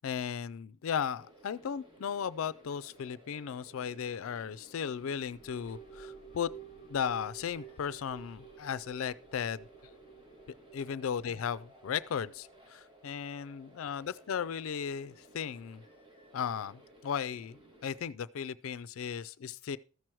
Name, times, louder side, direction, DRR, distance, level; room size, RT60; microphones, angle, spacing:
voice 1, 0.0-6.5 6.9-9.6 10.7-15.8 16.3-19.8, left 7 dB, 75° left, 0.4 m, -36 dB
sound 1, 1.2-18.0, right 1 dB, 25° right, 2.1 m, -58 dB
sound 2, 5.3-12.7, right 6 dB, 40° left, 0.7 m, -52 dB
14.0 x 6.2 x 4.5 m
head